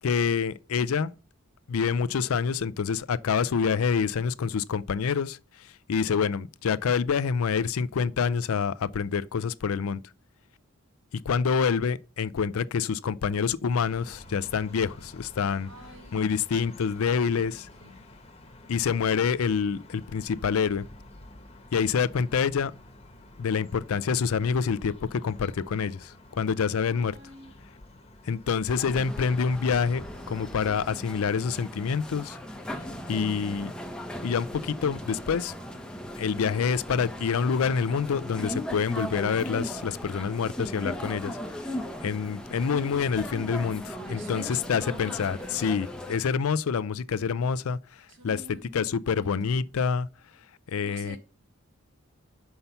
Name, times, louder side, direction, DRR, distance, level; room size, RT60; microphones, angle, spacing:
voice 1, 0.0-1.1 1.7-10.0 11.3-15.7 16.1-17.7 18.7-20.9 21.7-22.7 23.4-27.2 28.2-32.4 33.1-33.7 34.2-35.5 36.2-41.4 42.0-48.4 48.7-50.1 50.7-51.2, left 6 dB, 80° left, 0.4 m, -27 dB
sound 1, 13.7-30.9, left 1 dB, 25° left, 1.1 m, -50 dB
voice 2, 15.6-16.3 17.8-18.0 26.9-27.5 44.0-45.6 48.1-49.6 50.8-51.2, right 1 dB, 60° right, 2.1 m, -47 dB
sound 2, 28.7-46.2, equal, 5° left, 0.7 m, -38 dB
5.7 x 5.5 x 6.7 m
head